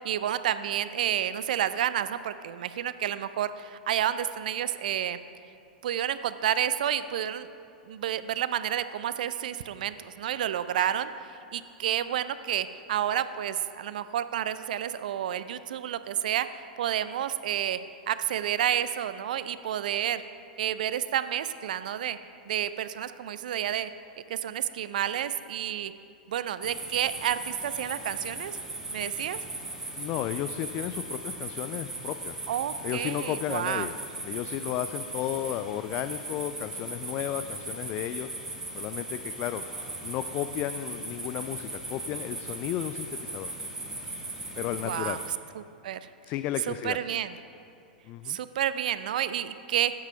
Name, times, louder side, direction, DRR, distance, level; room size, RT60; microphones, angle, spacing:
voice 1, 0.0-5.2 5.8-7.5 7.9-11.1 11.5-16.5 16.8-17.8 18.1-20.2 20.6-22.2 22.5-23.9 24.3-25.9 26.3-28.6 28.9-29.4 32.5-33.9 44.8-45.2 45.5-46.0 46.7-47.3 48.3-49.9, right 10 dB, 65° right, 13 dB, 0.4 m, -30 dB
sound 1, 26.6-45.3, right 2 dB, 10° right, 1.5 m, -38 dB
voice 2, 30.0-32.3 32.8-33.9 34.2-38.3 38.7-39.6 40.0-43.5 44.6-45.2 46.2-47.0 48.1-48.4, left 12 dB, 35° left, 10 dB, 0.3 m, -33 dB
9.4 x 7.5 x 5.6 m, 2.6 s
figure-of-eight pair, 100°, 5 cm